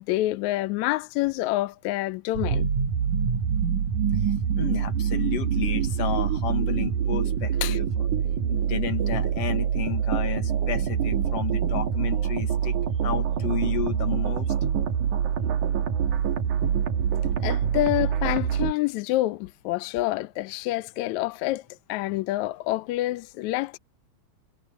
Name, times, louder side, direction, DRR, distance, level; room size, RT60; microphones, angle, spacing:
voice 1, 0.0-2.7 7.6-7.8 17.4-21.6 21.9-23.8, left 17 dB, 80° left, 1.9 m, -27 dB
sound 1, 2.3-18.7, right 8 dB, 85° right, 2.9 m, -25 dB
voice 2, 4.5-8.1 8.5-12.7 13.0-14.5, left 11 dB, 60° left, 2.3 m, -32 dB
omnidirectional pair, 3.4 m